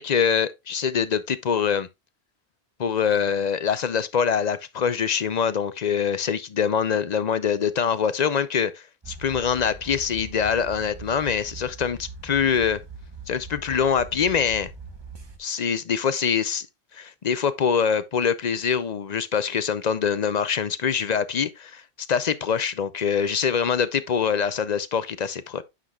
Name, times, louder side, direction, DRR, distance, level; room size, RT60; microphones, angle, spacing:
voice 1, 0.0-1.9 2.8-12.8 13.3-14.7 15.4-16.7 16.9-21.8 22.1-25.6, left 7 dB, 50° left, 0.6 m, -24 dB
sound 1, 9.0-15.4, right 4 dB, 25° right, 1.1 m, -41 dB
9.7 x 6.6 x 2.3 m
omnidirectional pair, 1.1 m